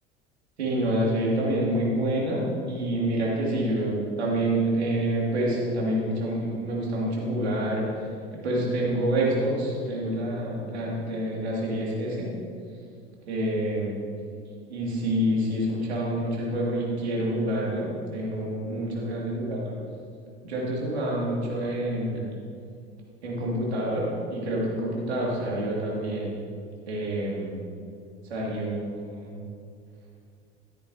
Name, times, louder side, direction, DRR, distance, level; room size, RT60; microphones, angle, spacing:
voice 1, 0.6-7.9 8.4-12.3 13.3-14.0 14.7-19.8 20.4-22.3 23.2-26.3 26.9-27.6 28.3-29.4, right 1 dB, 80° right, -4 dB, 2.7 m, -27 dB
13.0 x 10.0 x 2.9 m, 2.3 s
hypercardioid pair, 75°, 32 cm